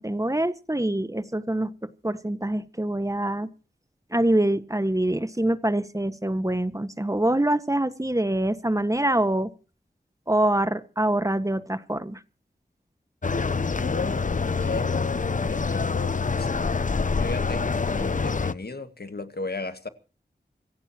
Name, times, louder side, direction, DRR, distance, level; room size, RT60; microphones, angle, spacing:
voice 1, 0.0-1.7 2.0-3.5 4.1-9.5 10.3-12.2, right 1 dB, 20° right, 1.5 m, -25 dB
sound 1, 13.2-18.5, left 4 dB, 50° left, 0.7 m, -26 dB
voice 2, 13.8-14.3 14.6-16.7 17.1-19.9, left 3 dB, 65° left, 1.8 m, -35 dB
27.0 x 16.0 x 2.9 m
wide cardioid pair, 70°, 17 cm